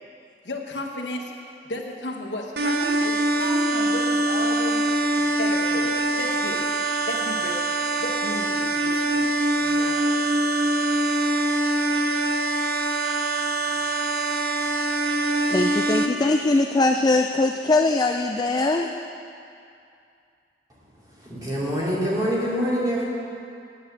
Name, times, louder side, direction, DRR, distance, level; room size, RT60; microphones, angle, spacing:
voice 1, 0.4-1.3 1.6-6.7 7.0-7.6 8.0-9.3 9.6-10.7, left 1 dB, 80° left, 1 dB, 1.2 m, -34 dB
sound 1, 2.6-16.1, right 2 dB, 65° right, 0.8 m, -23 dB
voice 2, 15.5-18.9, left 2 dB, 25° left, 4 dB, 0.3 m, -21 dB
voice 3, 21.1-23.1, equal, 20° right, -7 dB, 2.6 m, -25 dB
9.3 x 8.8 x 7.1 m, 2.5 s
head